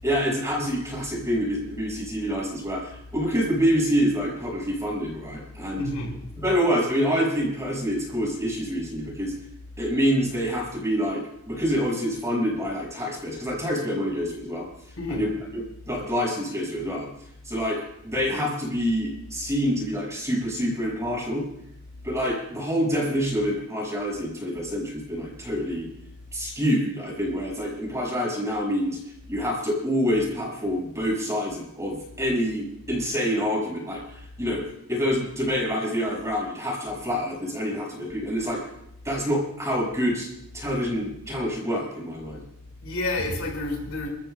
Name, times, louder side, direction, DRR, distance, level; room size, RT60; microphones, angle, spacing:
voice 1, 0.0-5.9 6.4-9.3 9.8-14.7 15.1-15.3 15.9-17.1 17.4-21.4 22.0-25.9 26.3-29.0 29.3-38.7 39.0-40.3 40.5-42.4, equal, 15° right, -2 dB, 5.5 m, -26 dB
voice 2, 5.8-6.2 15.0-15.3 22.0-22.2 42.8-44.1, left 2 dB, 75° left, 0 dB, 4.9 m, -29 dB
29.5 x 13.5 x 2.2 m, 0.78 s
head